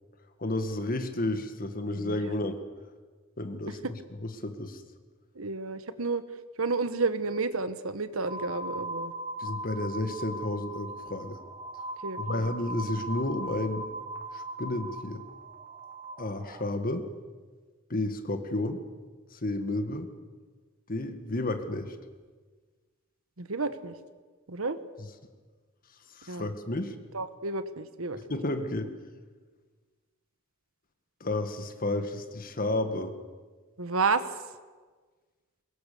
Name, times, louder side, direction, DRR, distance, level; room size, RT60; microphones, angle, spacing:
voice 1, 0.4-2.6 3.4-3.8 4.2-4.8 9.4-11.4 12.2-13.9 14.3-15.2 16.2-17.1 17.9-18.8 19.3-20.1 20.9-22.0 26.1-27.0 28.3-28.9 31.2-33.1, left 2 dB, 45° left, 8 dB, 1.9 m, -31 dB
voice 2, 1.9-2.3 3.7-3.9 5.3-6.2 6.6-9.1 12.0-12.5 23.4-24.0 24.5-24.8 26.3-26.5 27.1-28.2 33.8-34.3, right 4 dB, 80° right, 12 dB, 1.4 m, -31 dB
sound 1, 8.3-16.7, right 1 dB, 20° right, 1.6 m, -39 dB
23.5 x 21.5 x 7.0 m, 1.4 s
head